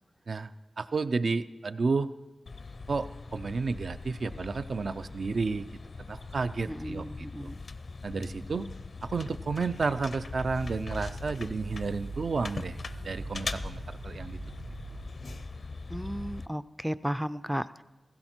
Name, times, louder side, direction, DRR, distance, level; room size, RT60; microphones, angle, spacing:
voice 1, 0.8-2.1 2.9-5.8 6.1-7.5 8.0-8.7 9.0-12.8 13.0-14.4, right 4 dB, 65° right, 11 dB, 0.5 m, -31 dB
sound 1, 2.5-16.5, left 3 dB, 60° left, 0.5 m, -41 dB
voice 2, 6.7-7.6 15.9-17.8, equal, 5° right, 15 dB, 0.4 m, -34 dB
sound 2, 10.3-15.4, right 3 dB, 40° right, 1.0 m, -43 dB
16.5 x 15.5 x 4.4 m, 1.2 s
wide cardioid pair, 105°, 0 cm